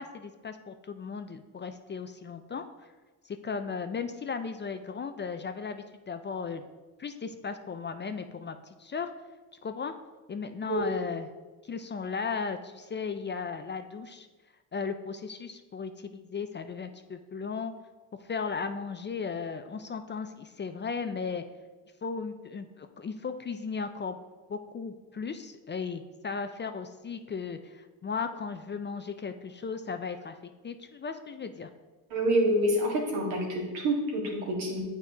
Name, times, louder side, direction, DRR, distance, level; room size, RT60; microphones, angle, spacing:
voice 1, 0.0-2.9 3.2-6.6 7.0-9.1 9.6-9.9 10.3-11.3 11.6-14.3 14.7-17.7 18.2-21.4 22.0-24.2 24.5-30.4 30.6-31.7, left 5 dB, 25° left, 8 dB, 0.4 m, -36 dB
voice 2, 32.1-34.8, right 1 dB, 85° right, -3 dB, 1.8 m, -27 dB
8.7 x 4.6 x 2.8 m, 1.2 s
supercardioid pair, 65°, 45 cm